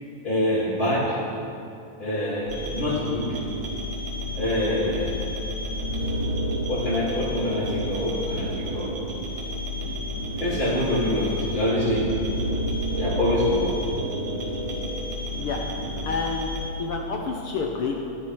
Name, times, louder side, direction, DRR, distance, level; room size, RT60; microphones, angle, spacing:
voice 1, 0.2-1.2 2.0-3.3 4.3-5.2 6.7-8.9 10.4-12.0 12.9-13.7, left 1 dB, 15° left, -13 dB, 3.1 m, -25 dB
sound 1, 2.5-16.6, equal, 40° right, 2.7 m, -30 dB
voice 2, 16.0-16.5 16.8-18.0, left 4 dB, 80° left, 1 dB, 1.2 m, -28 dB
16.0 x 12.0 x 4.7 m, 2.7 s
omnidirectional pair, 3.8 m